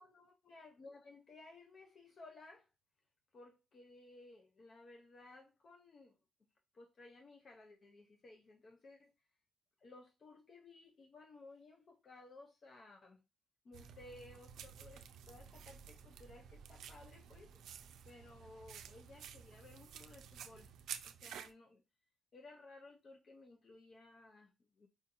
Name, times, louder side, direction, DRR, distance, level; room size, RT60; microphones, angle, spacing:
voice 1, 0.0-2.7 3.3-6.5 6.7-9.1 9.8-13.2 13.6-17.6 18.0-20.7 21.0-21.8 22.3-24.9, left 2 dB, 45° left, 0.6 m, -58 dB
sound 1, 13.7-21.5, right 8 dB, 75° right, 0.4 m, -52 dB
4.8 x 2.7 x 2.5 m
cardioid pair, 90°, 0 cm